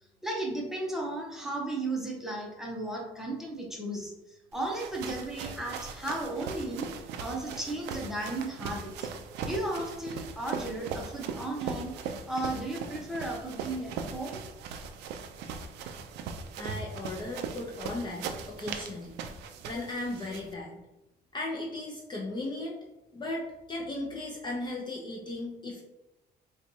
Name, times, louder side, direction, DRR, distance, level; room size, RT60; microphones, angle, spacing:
voice 1, 0.2-6.9 7.2-9.1 9.4-11.9 12.3-14.4, right 2 dB, ahead, -2 dB, 0.8 m, -35 dB
sound 1, 4.5-20.5, right 5 dB, 85° right, 0.4 m, -39 dB
voice 2, 16.6-19.2 19.6-20.8 21.3-22.8 23.1-25.8, left 2 dB, 25° left, -3 dB, 0.6 m, -36 dB
4.4 x 2.3 x 2.7 m, 0.96 s
cardioid pair, 110°, 17 cm